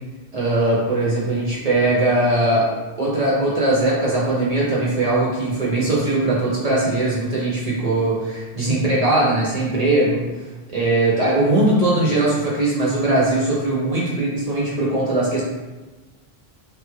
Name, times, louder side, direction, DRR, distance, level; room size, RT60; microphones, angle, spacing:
voice 1, 0.3-2.7 3.0-10.3 10.7-15.4, right 2 dB, 45° right, -6 dB, 0.6 m, -20 dB
3.2 x 2.4 x 3.0 m, 1.2 s
omnidirectional pair, 1.1 m